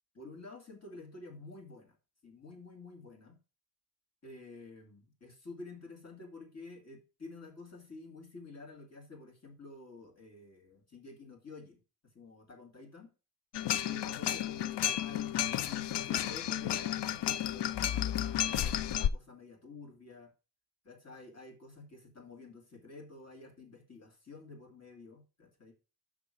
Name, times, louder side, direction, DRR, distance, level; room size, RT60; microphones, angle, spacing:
voice 1, 0.1-2.0 2.2-3.4 4.2-11.8 12.1-13.1 13.8-20.3 20.8-25.7, left 3 dB, 40° left, 2 dB, 2.3 m, -50 dB
sound 1, 13.5-19.1, left 11 dB, 80° left, 0.5 m, -32 dB
6.2 x 6.1 x 4.9 m, 0.31 s
wide cardioid pair, 175°, 41 cm